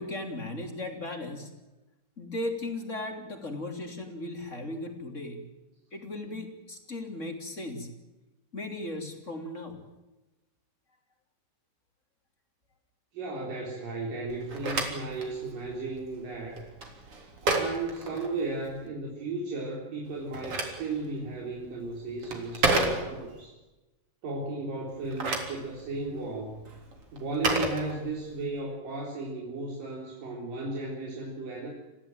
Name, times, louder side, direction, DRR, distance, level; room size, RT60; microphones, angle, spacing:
voice 1, 0.0-1.5 2.2-5.4 5.9-7.9 8.5-9.8, left 2 dB, 20° left, 4 dB, 3.4 m, -36 dB
voice 2, 13.1-16.7 17.4-23.6 24.2-26.6 27.1-31.7, right 2 dB, 80° right, -2 dB, 5.6 m, -35 dB
Telephone, 14.3-18.8 20.0-23.5 24.9-28.5, right 3 dB, 45° right, 4.4 m, -32 dB
28.0 x 15.5 x 9.0 m, 1.1 s
omnidirectional pair, 3.8 m